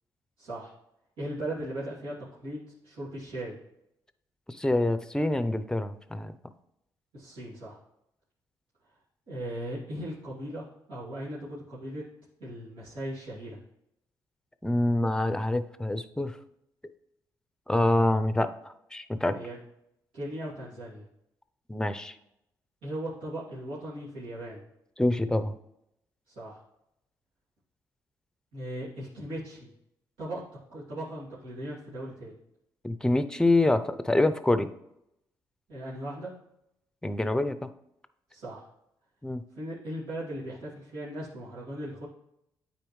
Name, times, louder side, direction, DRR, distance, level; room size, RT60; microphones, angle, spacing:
voice 1, 0.4-0.7 1.2-3.6 7.1-7.8 9.3-12.0 12.4-13.6 19.3-19.6 20.1-21.0 22.8-24.6 26.3-26.6 28.5-29.7 30.2-30.4 30.7-32.3 35.7-36.3 38.3-38.7 39.5-42.1, right 1 dB, 80° right, -10 dB, 2.6 m, -38 dB
voice 2, 4.5-6.3 14.6-16.3 17.7-19.4 21.7-22.1 25.0-25.5 32.8-34.7 37.0-37.6 39.2-39.4, left 1 dB, 10° left, 11 dB, 0.6 m, -26 dB
8.9 x 4.3 x 3.2 m, 0.81 s
supercardioid pair, 60°, 8 cm